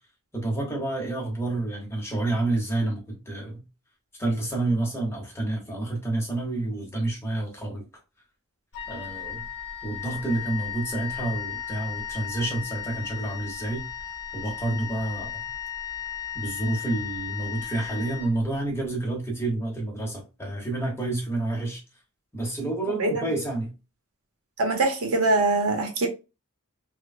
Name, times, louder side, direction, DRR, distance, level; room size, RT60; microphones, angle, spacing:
voice 1, 0.3-3.6 4.2-7.8 8.9-9.4 9.8-13.9 14.3-15.5 16.3-21.8 22.3-23.7, right 2 dB, 10° left, 1.0 m, -29 dB
Wind instrument woodwind instrument, 8.7-18.8, left 8 dB, 55° left, 0.7 m, -36 dB
voice 2, 24.6-26.1, right 2 dB, 75° right, 0.9 m, -23 dB
3.1 x 2.2 x 2.5 m
head